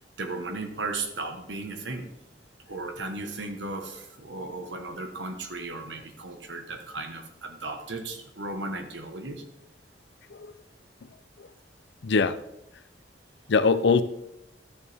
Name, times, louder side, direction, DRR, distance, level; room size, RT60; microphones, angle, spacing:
voice 1, 0.2-2.0 2.7-9.4, right 3 dB, 75° right, 5 dB, 1.3 m, -35 dB
voice 2, 12.0-12.4 13.5-14.0, left 4 dB, 70° left, 13 dB, 0.5 m, -22 dB
12.5 x 6.8 x 3.5 m, 0.87 s
head